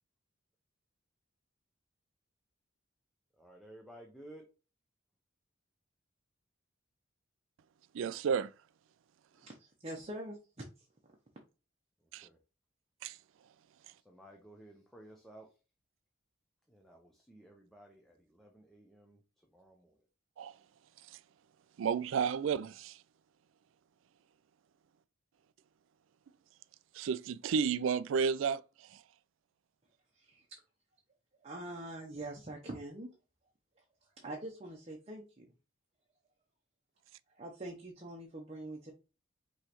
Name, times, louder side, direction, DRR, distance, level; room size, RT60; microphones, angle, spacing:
voice 1, 3.3-4.4 12.0-12.4 13.9-15.6 16.7-20.1, right 1 dB, ahead, 0.7 m, -56 dB
voice 2, 7.9-8.5 12.1-12.3 13.0-13.2 20.4-20.5 21.1-21.2 21.8-23.0 26.9-28.6 28.9-29.0, right 6 dB, 75° right, 0.3 m, -32 dB
voice 3, 9.4-10.7 30.2-30.6 31.4-33.1 34.2-35.5 37.3-38.9, right 1 dB, 30° right, 0.8 m, -44 dB
5.4 x 3.1 x 2.9 m
head